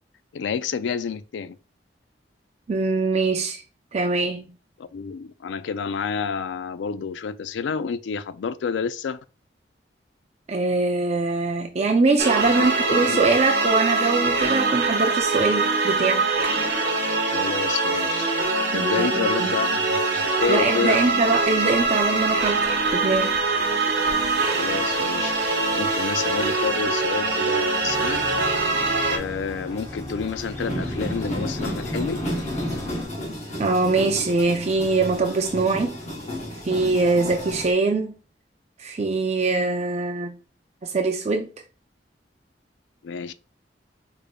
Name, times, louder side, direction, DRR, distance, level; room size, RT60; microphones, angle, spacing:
voice 1, 0.3-1.6 4.8-9.2 12.9-13.3 17.3-18.3 18.7-21.0 24.5-28.3 29.1-32.2 43.0-43.3, left 6 dB, 90° left, 0.4 m, -29 dB
voice 2, 2.7-3.6 3.9-4.5 10.5-16.3 18.7-19.5 20.5-23.3 33.6-36.0 36.7-38.2 38.8-40.3 40.8-41.5, right 3 dB, 40° right, 0.4 m, -23 dB
sound 1, 12.2-29.2, right 3 dB, 65° right, 1.1 m, -23 dB
sound 2, 20.9-37.7, left 1 dB, 40° left, 1.0 m, -35 dB
sound 3, 27.8-33.0, equal, 25° left, 0.7 m, -36 dB
5.0 x 3.3 x 2.2 m
head